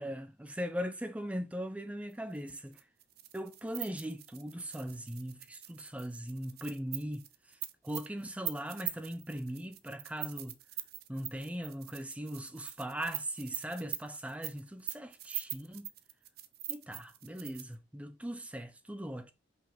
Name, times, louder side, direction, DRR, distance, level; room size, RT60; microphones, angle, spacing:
voice 1, 0.0-2.8 3.3-7.3 7.8-10.6 11.1-15.9 16.7-19.3, equal, 5° right, 0.6 m, -39 dB
sound 1, 2.4-17.7, right 14 dB, 50° right, 0.6 m, -42 dB
5.6 x 5.4 x 3.3 m
head